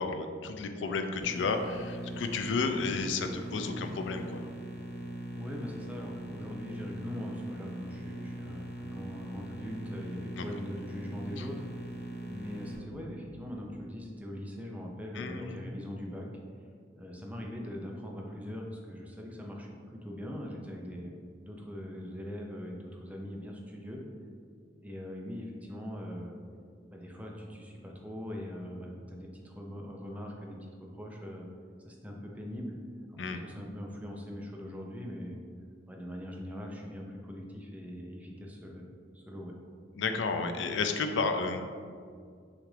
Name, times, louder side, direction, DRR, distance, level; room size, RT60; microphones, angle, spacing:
voice 1, 0.0-4.4 10.4-10.5 11.4-11.5 15.1-15.7 33.2-33.4 40.0-41.6, left 4 dB, 85° left, 6 dB, 0.4 m, -32 dB
sound 1, 1.2-12.8, right 1 dB, 70° left, 0.8 m, -41 dB
voice 2, 5.3-16.3 16.9-21.1 21.4-24.0 24.8-26.3 26.9-31.5 31.8-32.8 33.1-35.4 35.9-38.9 39.1-39.5, equal, 10° right, -1 dB, 0.5 m, -41 dB
6.1 x 2.5 x 3.2 m, 2.1 s
head